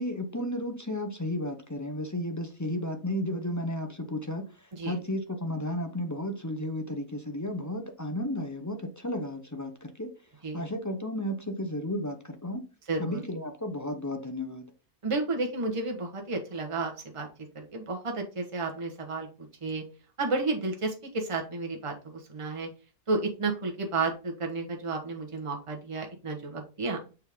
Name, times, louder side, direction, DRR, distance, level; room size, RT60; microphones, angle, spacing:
voice 1, 0.0-10.1 10.5-12.6 13.0-14.7, left 1 dB, 20° left, 0.5 m, -33 dB
voice 2, 12.9-13.2 15.0-17.3 17.5-19.3 19.6-19.8 20.2-22.7 23.1-27.0, right 3 dB, 20° right, 1.2 m, -32 dB
6.5 x 4.5 x 3.6 m
omnidirectional pair, 1.6 m